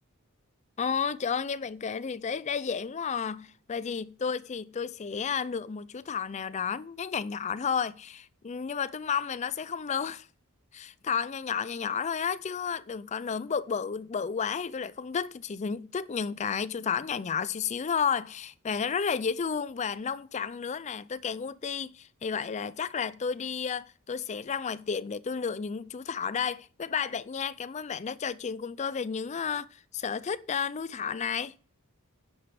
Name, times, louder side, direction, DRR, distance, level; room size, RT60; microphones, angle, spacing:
voice 1, 0.8-10.3 10.7-29.7 29.9-31.5, left 6 dB, 30° left, 0.4 m, -32 dB
9.9 x 5.2 x 7.6 m
head